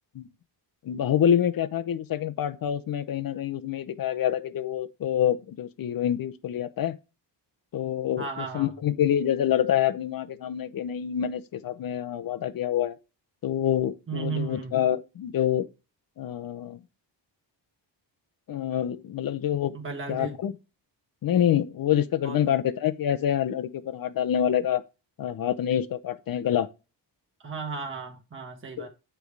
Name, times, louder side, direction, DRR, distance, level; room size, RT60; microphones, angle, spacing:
voice 1, 0.8-7.0 7.7-13.0 13.4-15.7 16.2-16.8 18.5-19.7 20.1-20.5 21.2-24.8 25.2-26.7 28.8-28.9, left 10 dB, 50° left, 0.7 m, -26 dB
voice 2, 8.2-8.7 14.1-14.8 19.7-20.4 22.2-22.4 27.4-28.9, right 5 dB, 25° right, 1.4 m, -34 dB
9.2 x 3.5 x 4.7 m
wide cardioid pair, 175°, 44 cm